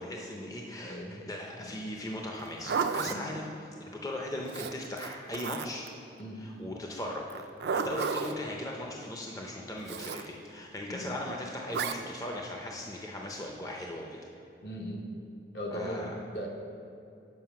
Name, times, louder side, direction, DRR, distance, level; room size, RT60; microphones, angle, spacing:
voice 1, 0.0-3.5 3.8-5.8 6.4-7.3 7.7-14.2 15.7-16.1, left 1 dB, 20° left, 0 dB, 0.5 m, -38 dB
voice 2, 0.8-1.2 1.6-1.7 3.0-3.3 6.2-6.6 10.9-11.1 14.6-15.0 15.5-16.5, equal, 65° left, 0 dB, 1.0 m, -39 dB
Zipper (clothing), 2.3-3.2 4.5-5.9 7.3-8.4 9.9-10.3 11.7-12.0, right 5 dB, 70° right, 0.4 m, -33 dB
7.5 x 5.0 x 5.8 m, 2.7 s
head